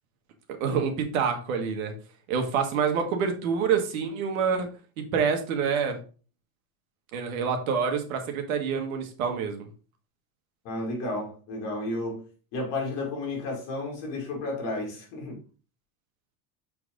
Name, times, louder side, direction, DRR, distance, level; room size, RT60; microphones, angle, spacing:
voice 1, 0.6-1.9 2.3-4.7 5.1-6.0 7.1-9.7, right 6 dB, 85° right, 1.7 m, -27 dB
voice 2, 10.6-12.2 12.5-15.4, left 2 dB, 40° left, 2.7 m, -32 dB
6.6 x 4.6 x 3.8 m
supercardioid pair, 175°, 41 cm